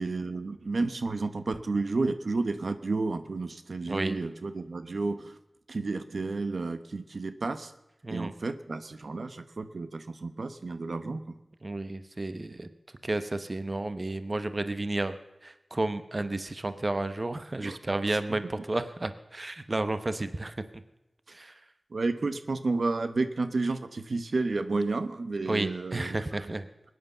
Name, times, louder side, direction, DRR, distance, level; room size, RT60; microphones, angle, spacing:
voice 1, 0.0-5.4 5.7-7.7 8.1-11.4 17.6-17.8 18.3-18.4 21.9-26.5, right 3 dB, 75° right, 10 dB, 0.9 m, -31 dB
voice 2, 3.9-4.2 8.0-8.3 11.6-12.7 13.0-15.2 15.4-20.8 21.3-21.6 25.5-26.7, right 2 dB, 40° right, 11 dB, 0.9 m, -32 dB
21.0 x 9.7 x 6.6 m, 0.97 s
wide cardioid pair, 70°, 0 cm